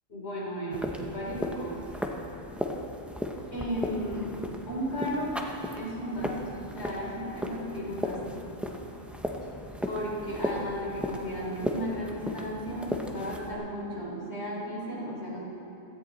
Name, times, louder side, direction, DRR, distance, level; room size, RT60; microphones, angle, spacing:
voice 1, 0.1-1.9 3.5-4.3 4.7-5.3 5.7-6.4 6.7-8.2 9.9-15.4, equal, 50° left, -5 dB, 3.9 m, -34 dB
sound 1, 0.7-13.5, equal, ahead, 0.6 m, -36 dB
16.5 x 13.5 x 4.1 m, 3.0 s
omnidirectional pair, 1.4 m